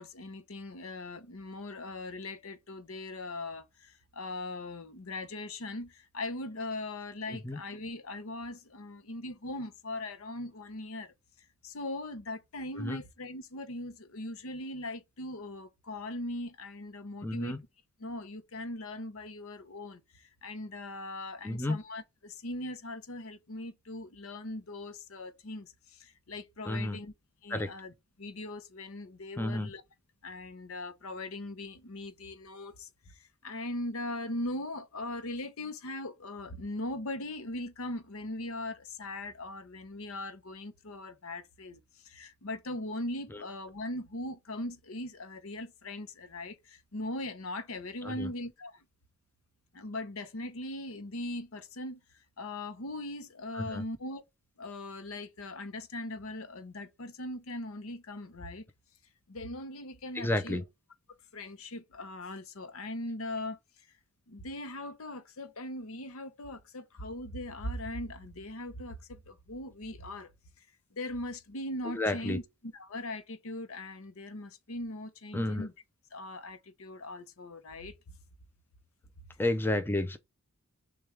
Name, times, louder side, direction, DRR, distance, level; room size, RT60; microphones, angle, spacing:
voice 1, 0.0-11.1 11.6-17.6 18.0-27.1 27.4-29.8 30.2-48.8 49.7-52.0 52.4-54.2 54.6-58.6 59.3-60.6 61.3-63.6 64.3-70.3 70.9-75.7 76.1-78.2, left 1 dB, 65° left, 0.8 m, -40 dB
voice 2, 17.2-17.6 21.4-21.8 26.7-27.0 27.5-27.7 29.4-29.7 48.0-48.3 53.5-53.8 60.1-60.6 71.9-72.4 75.3-75.7 79.4-80.2, left 1 dB, 10° left, 0.4 m, -31 dB
6.7 x 2.3 x 3.2 m
head